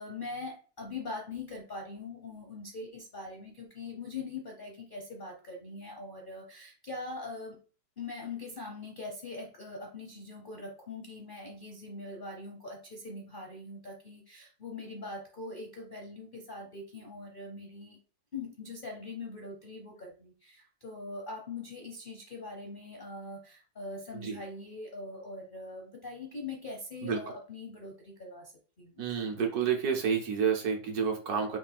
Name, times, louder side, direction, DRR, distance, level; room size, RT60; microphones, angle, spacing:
voice 1, 0.0-7.6 8.0-18.0 18.3-29.1, left 3 dB, 45° left, -1 dB, 0.7 m, -42 dB
voice 2, 29.0-31.6, right 7 dB, 65° right, 2 dB, 1.3 m, -29 dB
5.8 x 2.7 x 3.4 m, 0.38 s
omnidirectional pair, 2.0 m